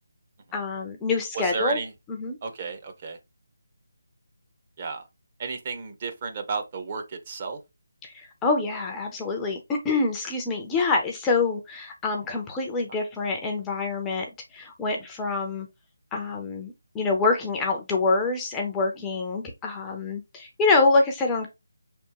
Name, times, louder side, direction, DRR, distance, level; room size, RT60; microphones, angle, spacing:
voice 1, 0.5-1.8 2.1-2.4 8.0-14.3 14.5-15.7 16.1-21.5, left 3 dB, 10° left, 0.5 m, -26 dB
voice 2, 1.3-1.9 2.4-3.2 4.8-5.0 5.4-7.6, right 4 dB, 30° right, 0.7 m, -32 dB
4.8 x 3.4 x 2.9 m
figure-of-eight pair, 170°, 0 cm